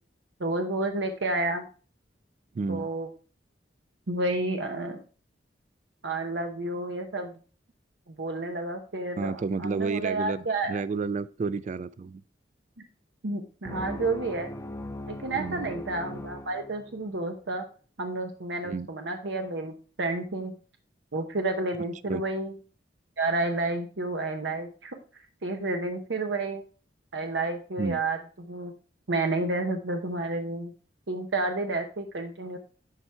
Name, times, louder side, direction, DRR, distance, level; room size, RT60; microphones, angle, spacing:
voice 1, 0.4-1.6 2.7-3.1 4.1-5.0 6.0-7.3 8.1-10.8 13.2-14.5 15.1-17.6 18.0-20.5 21.1-22.5 23.2-25.0 25.4-26.6 27.1-28.7 29.1-30.7 31.1-32.6, right 2 dB, 75° right, 0.9 m, -30 dB
voice 2, 2.5-2.9 9.2-12.2 15.4-15.7 18.6-18.9 22.1-22.2 27.8-28.0, right 4 dB, 40° right, 0.3 m, -31 dB
sound 1, 13.6-17.2, left 1 dB, 15° left, 0.6 m, -39 dB
11.0 x 4.4 x 3.4 m
head